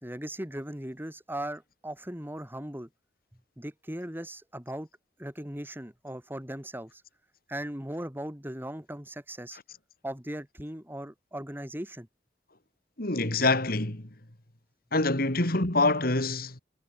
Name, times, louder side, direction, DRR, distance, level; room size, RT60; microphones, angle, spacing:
voice 1, 0.0-2.9 3.6-4.9 5.2-7.0 7.5-9.6 10.0-12.1, right 1 dB, 10° right, 3.2 m, -38 dB
voice 2, 13.0-14.1 14.9-16.6, left 2 dB, 55° left, 3.0 m, -26 dB
head